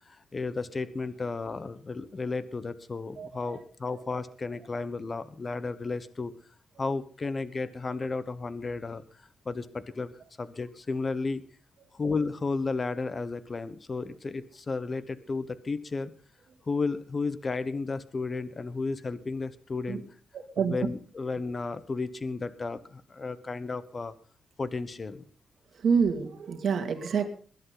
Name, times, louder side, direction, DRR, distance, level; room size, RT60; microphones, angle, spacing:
voice 1, 0.1-6.3 6.8-10.1 10.4-11.4 11.9-16.1 16.7-20.0 20.6-24.1 24.6-25.2, left 3 dB, 30° left, 14 dB, 1.1 m, -33 dB
voice 2, 3.2-3.6 19.9-20.0 20.3-20.8 25.7-27.3, right 6 dB, 55° right, 5 dB, 2.6 m, -27 dB
21.5 x 11.0 x 4.0 m, 0.41 s
cardioid pair, 110°, 0 cm